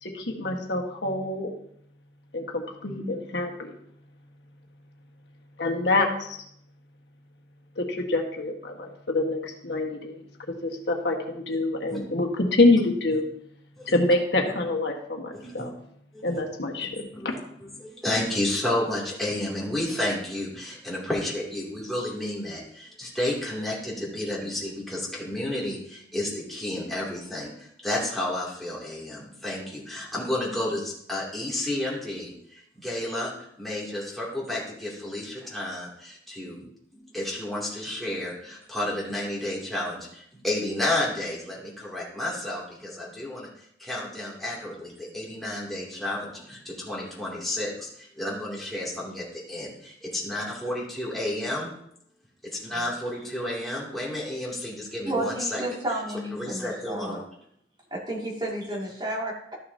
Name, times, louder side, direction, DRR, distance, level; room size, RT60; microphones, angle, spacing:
voice 1, 0.0-1.5 2.3-3.7 5.6-6.4 7.8-10.2 10.6-13.2 13.9-15.7 16.2-17.3, left 2 dB, 75° left, 1 dB, 1.5 m, -26 dB
voice 2, 15.3-15.7 16.1-16.4 17.1-36.6 36.9-43.5 43.8-51.7 52.6-55.6 56.3-57.2, left 1 dB, ahead, -6 dB, 2.7 m, -31 dB
voice 3, 55.1-57.2 57.9-59.5, right 1 dB, 25° right, -3 dB, 2.3 m, -31 dB
13.5 x 6.6 x 2.8 m, 0.71 s
head